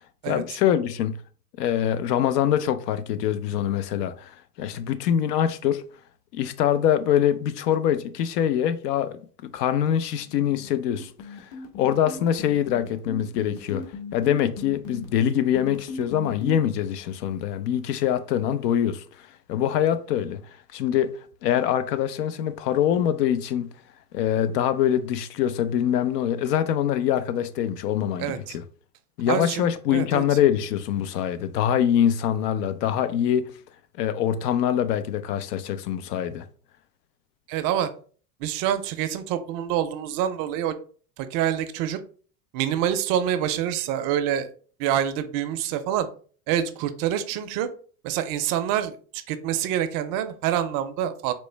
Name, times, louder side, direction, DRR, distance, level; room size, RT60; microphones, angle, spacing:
voice 1, 0.3-1.2 1.6-4.3 4.6-5.8 6.3-9.2 9.5-11.5 11.8-13.8 14.1-19.0 19.5-20.4 20.7-21.1 21.4-23.7 24.1-28.6 29.2-33.5 34.0-36.4, left 10 dB, 75° left, 0.6 m, -24 dB
sound 1, 10.2-16.6, left 4 dB, 55° left, 1.3 m, -36 dB
voice 2, 28.2-28.6 29.3-30.4 37.5-37.9 38.4-40.7 41.2-42.0 42.5-44.5 44.8-46.1 46.5-47.7 48.0-49.0 49.3-51.3, right 10 dB, 45° right, 0.5 m, -26 dB
4.4 x 2.1 x 3.2 m
hypercardioid pair, 90°, 48 cm